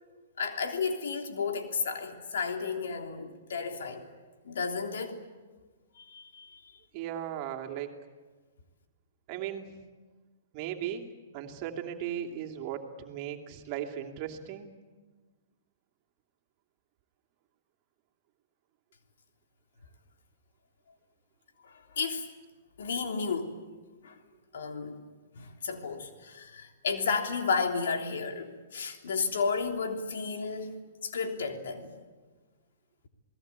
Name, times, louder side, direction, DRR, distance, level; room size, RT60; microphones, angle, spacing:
voice 1, 0.4-4.1 4.4-5.2 6.0-6.6 21.6-22.3 22.8-23.6 24.0-24.2 24.5-25.0 25.3-31.9, left 5 dB, 70° left, 3.4 m, -33 dB
voice 2, 6.9-7.9 9.3-9.7 10.5-11.1 11.3-14.7, right 10 dB, 40° right, 3.0 m, -37 dB
28.5 x 19.5 x 8.5 m
hypercardioid pair, 120°, 0 cm